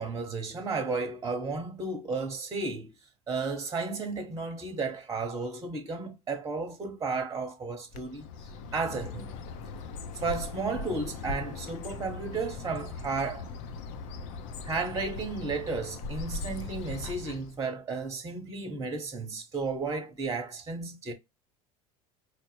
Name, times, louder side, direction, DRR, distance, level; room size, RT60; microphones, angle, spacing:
voice 1, 0.0-2.9 3.3-8.3 8.7-9.4 10.1-13.4 14.6-21.1, right 4 dB, 20° right, 1.0 m, -33 dB
Bird, 7.9-17.6, left 3 dB, 70° left, 0.6 m, -39 dB
4.6 x 2.0 x 3.0 m
supercardioid pair, 95°, 17 cm